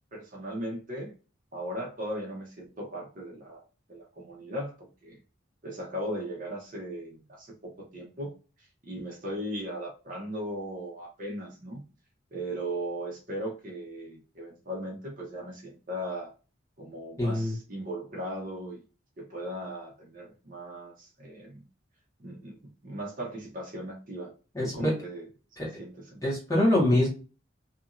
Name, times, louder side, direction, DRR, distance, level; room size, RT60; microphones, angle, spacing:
voice 1, 0.1-1.1 1.5-3.6 3.9-5.2 5.6-8.3 8.8-11.8 12.3-16.3 16.8-18.8 19.2-21.6 22.2-22.6 22.8-24.3 24.6-25.3 25.6-26.3, equal, 40° right, -1 dB, 0.8 m, -37 dB
voice 2, 17.2-17.5 24.5-24.9 25.6-25.7 26.2-27.1, left 1 dB, 15° left, -4 dB, 1.2 m, -24 dB
2.8 x 2.6 x 2.4 m, 0.34 s
head